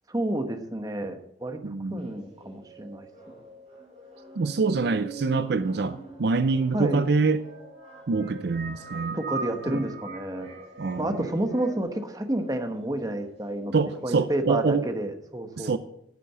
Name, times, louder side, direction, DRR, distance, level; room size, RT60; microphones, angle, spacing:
voice 1, 0.1-1.6 1.9-3.1 6.7-7.0 9.1-10.6 11.0-15.8, right 1 dB, 20° right, 1.1 m, -30 dB
voice 2, 1.6-2.1 4.4-7.4 8.1-9.2 9.7-9.8 10.8-11.2 13.7-14.8 15.6-15.8, right 4 dB, 60° right, 0.5 m, -25 dB
sound 1, 2.0-15.0, equal, 35° right, 3.9 m, -54 dB
sound 2, 2.2-11.8, right 4 dB, 85° right, 4.1 m, -41 dB
10.5 x 7.4 x 6.7 m
head